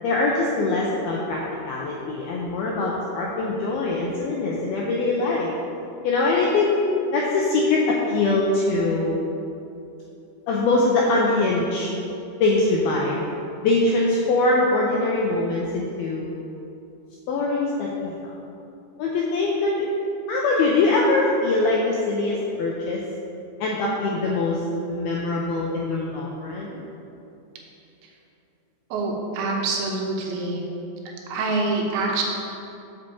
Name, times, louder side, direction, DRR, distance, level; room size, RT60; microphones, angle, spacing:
voice 1, 0.0-5.5 6.0-6.8 7.1-9.2 10.5-11.9 12.4-13.2 13.6-16.3 17.3-18.3 19.0-19.9 20.3-23.0 23.6-24.6 24.9-26.8, left 2 dB, 90° left, -3 dB, 2.2 m, -23 dB
voice 2, 28.9-30.7 31.3-32.2, right 3 dB, 80° right, -1 dB, 3.2 m, -25 dB
8.0 x 5.7 x 7.0 m, 2.7 s
omnidirectional pair, 5.4 m